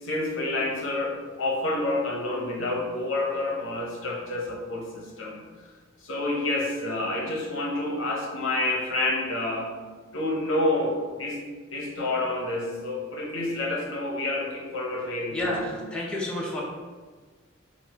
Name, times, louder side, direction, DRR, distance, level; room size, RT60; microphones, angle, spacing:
voice 1, 0.0-5.4 6.0-9.7 10.1-11.4 11.7-15.7, left 2 dB, 65° left, -1 dB, 0.7 m, -28 dB
voice 2, 15.3-16.6, left 1 dB, 5° left, -5 dB, 0.6 m, -30 dB
4.1 x 2.4 x 4.0 m, 1.4 s
head